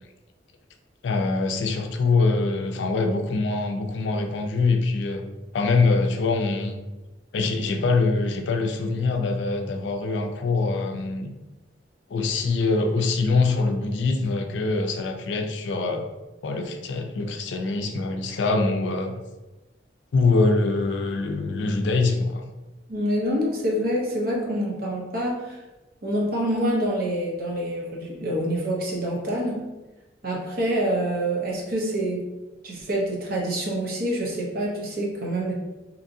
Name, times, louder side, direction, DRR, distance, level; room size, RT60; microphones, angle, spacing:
voice 1, 1.0-5.2 5.5-6.8 7.3-11.3 12.1-16.0 16.4-19.2 20.1-22.4, left 3 dB, 85° left, 4 dB, 0.4 m, -24 dB
voice 2, 22.9-25.6 26.0-29.6 30.2-32.2 32.6-35.5, right 1 dB, 55° right, -2 dB, 0.7 m, -26 dB
2.8 x 2.5 x 2.6 m, 1.1 s
head